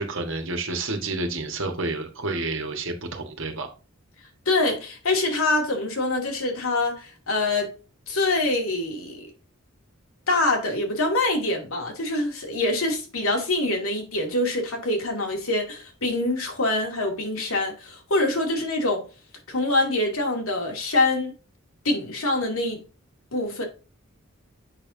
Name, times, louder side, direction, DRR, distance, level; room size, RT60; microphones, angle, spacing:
voice 1, 0.0-3.7, right 2 dB, 65° right, 1.7 m, -29 dB
voice 2, 4.5-7.7 8.1-9.2 10.3-19.1 19.5-21.3 21.8-22.8 23.3-23.6, left 2 dB, 80° left, 2.3 m, -25 dB
8.0 x 5.6 x 2.7 m
head